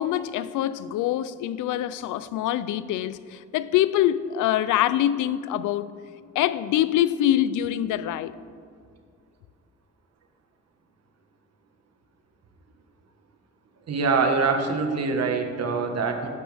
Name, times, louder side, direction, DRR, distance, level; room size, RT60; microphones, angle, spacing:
voice 1, 0.0-5.9 6.4-8.3, left 12 dB, 85° left, 0.5 m, -24 dB
voice 2, 13.9-16.3, right 4 dB, 55° right, 1.5 m, -24 dB
13.5 x 10.5 x 3.5 m
cardioid pair, 90°, 30 cm